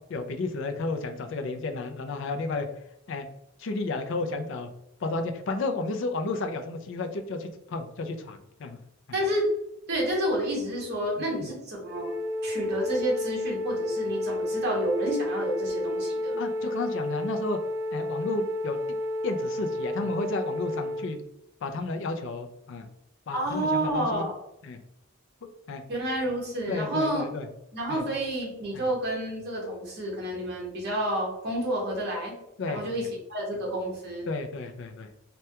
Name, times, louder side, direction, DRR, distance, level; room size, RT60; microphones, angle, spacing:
voice 1, 0.1-2.7 3.1-3.3 3.6-4.7 5.0-8.8 11.4-11.5 16.4-17.6 17.9-19.0 19.2-21.2 21.6-22.9 23.3-24.3 24.6-24.8 25.7-25.8 26.7-27.5 27.9-28.0 28.7-28.8 32.6-33.1 34.3-35.1, left 3 dB, 60° left, 7 dB, 0.4 m, -32 dB
voice 2, 9.1-9.5 9.9-16.4 23.3-24.4 25.9-27.2 27.7-32.4 32.7-34.3, right 1 dB, 50° right, -3 dB, 1.2 m, -29 dB
Wind instrument woodwind instrument, 11.9-21.1, left 1 dB, 15° right, 0.4 m, -31 dB
3.3 x 2.2 x 2.8 m, 0.83 s
head